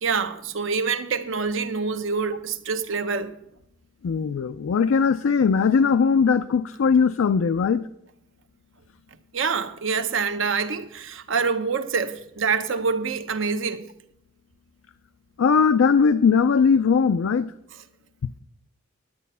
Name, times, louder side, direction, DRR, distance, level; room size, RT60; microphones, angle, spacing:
voice 1, 0.0-3.3 9.3-13.9, right 5 dB, 70° right, 0.8 m, -26 dB
voice 2, 4.0-7.8 15.4-17.5, left 5 dB, 85° left, 0.4 m, -19 dB
10.5 x 9.2 x 5.5 m
head